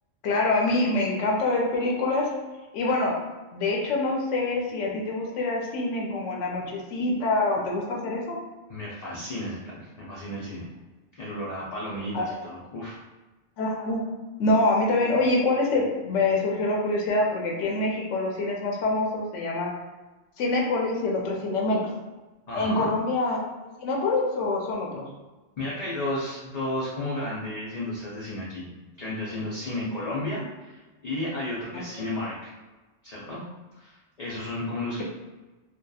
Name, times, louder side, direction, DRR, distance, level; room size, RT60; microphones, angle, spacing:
voice 1, 0.2-2.3 2.7-3.2 3.5-8.4 12.1-12.4 13.6-14.1 14.4-19.7 20.4-22.0 22.5-23.4 23.8-25.0 31.7-31.8, left 2 dB, 85° left, -1 dB, 0.9 m, -25 dB
voice 2, 8.7-10.7 11.2-13.0 22.5-22.9 25.6-32.5 33.0-33.4 33.7-35.0, left 1 dB, 55° left, -7 dB, 0.4 m, -33 dB
2.7 x 2.2 x 2.3 m, 1.2 s
omnidirectional pair, 1.2 m